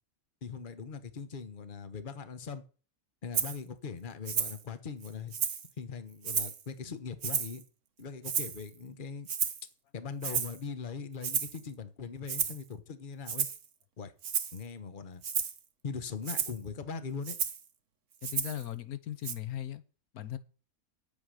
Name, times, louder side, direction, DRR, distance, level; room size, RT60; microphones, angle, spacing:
voice 1, 0.4-2.6 3.2-5.4 5.8-7.6 8.0-9.3 9.9-13.5 14.0-14.1 14.5-15.2 15.8-17.4, left 5 dB, 40° left, 1.2 m, -40 dB
Rattle (instrument), 3.3-3.6 4.3-4.6 5.0-5.7 6.2-6.6 7.2-7.6 8.2-8.7 9.3-9.6 10.2-10.6 11.2-11.6 12.3-12.6 13.3-13.7 14.2-14.6 15.2-15.6 16.2-16.6 17.2-17.6 18.2-18.6 19.2-19.3, right 7 dB, 60° right, 1.4 m, -32 dB
voice 2, 18.2-19.8 20.1-20.4, left 12 dB, 90° left, 1.4 m, -38 dB
9.6 x 8.6 x 6.4 m
omnidirectional pair, 1.5 m